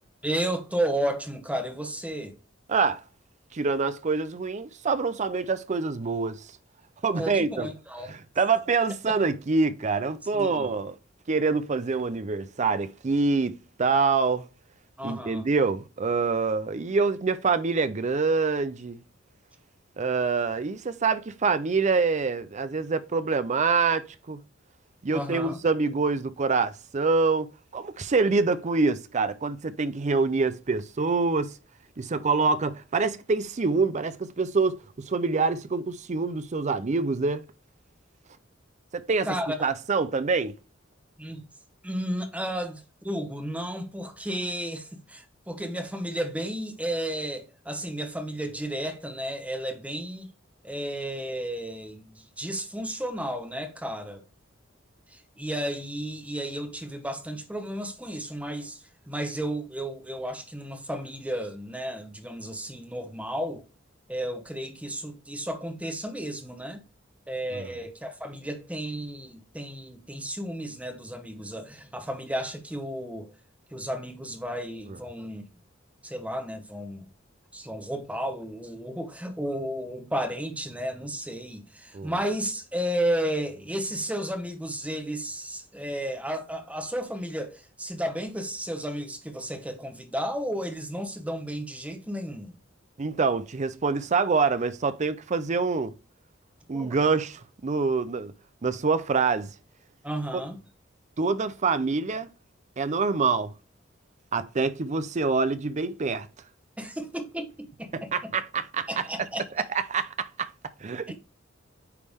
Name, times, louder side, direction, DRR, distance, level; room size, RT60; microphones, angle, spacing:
voice 1, 0.2-2.4 7.1-8.1 9.1-9.2 10.3-10.7 15.0-15.5 25.1-25.6 39.2-39.6 41.2-41.4 41.8-50.3 50.6-54.2 55.1-63.6 64.1-66.8 67.3-73.3 73.7-75.4 76.0-77.1 77.5-92.5 96.7-97.0 100.0-100.6 106.8-108.1 108.9-109.5 111.1-111.2, right 1 dB, 5° right, 1.1 m, -33 dB
voice 2, 2.7-3.0 3.5-6.5 7.0-7.7 8.1-11.0 11.3-14.4 15.0-19.0 20.0-24.4 25.0-27.5 27.7-31.5 32.0-37.4 38.9-39.3 39.6-40.5 67.5-67.7 81.9-82.1 93.0-95.9 96.7-98.3 98.6-99.5 100.3-100.4 101.2-102.3 102.8-103.5 104.3-106.3 107.9-109.1 109.9-110.5 110.8-111.1, right 4 dB, 35° right, 0.5 m, -26 dB
9.4 x 3.4 x 3.5 m
head